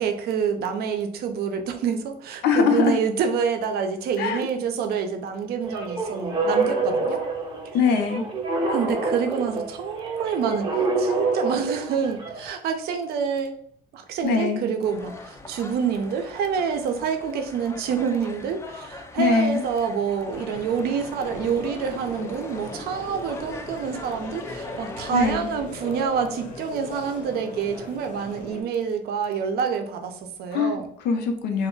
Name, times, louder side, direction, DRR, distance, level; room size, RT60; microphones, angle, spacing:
voice 1, 0.0-7.2 8.7-13.6 13.9-30.9, right 6 dB, 70° right, 6 dB, 0.5 m, -27 dB
voice 2, 2.4-2.9 4.2-4.5 7.7-8.2 14.2-14.6 19.2-19.6 25.1-25.4 30.5-30.8 31.0-31.7, left 5 dB, 85° left, 5 dB, 0.5 m, -22 dB
sound 1, 5.6-12.5, right 3 dB, 30° right, 0.7 m, -27 dB
sound 2, 14.8-25.3, left 3 dB, 15° left, 0.3 m, -42 dB
sound 3, 20.3-28.6, left 2 dB, 50° left, 0.7 m, -38 dB
2.3 x 2.1 x 3.7 m, 0.66 s
cardioid pair, 110°, 17 cm